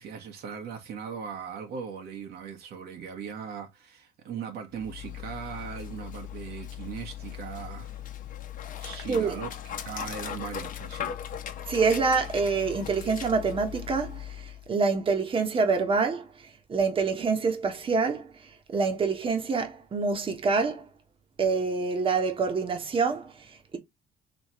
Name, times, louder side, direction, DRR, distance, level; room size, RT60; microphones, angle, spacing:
voice 1, 0.0-8.0 8.8-11.2, right 7 dB, 70° right, 1.4 m, -39 dB
Dog, 4.7-14.7, left 10 dB, 50° left, 0.9 m, -39 dB
voice 2, 9.1-9.4 11.7-16.3 16.7-18.3 18.7-20.8 21.4-23.8, right 4 dB, 30° right, 1.2 m, -26 dB
3.3 x 3.1 x 4.2 m
cardioid pair, 110°, 17 cm